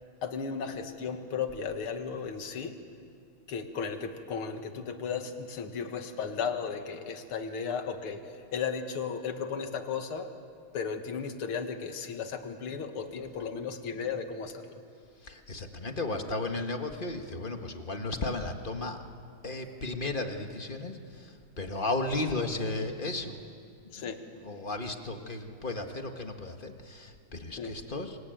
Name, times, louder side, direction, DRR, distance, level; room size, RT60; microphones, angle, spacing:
voice 1, 0.2-2.7 3.5-8.2 8.5-10.3 10.7-14.8 23.9-24.2 27.6-27.7, left 6 dB, 85° left, 7 dB, 2.5 m, -35 dB
voice 2, 15.2-19.0 19.4-23.5 23.8-24.1 24.4-28.2, left 2 dB, 25° left, 5 dB, 1.4 m, -34 dB
26.5 x 23.5 x 9.1 m, 2.3 s
omnidirectional pair, 2.3 m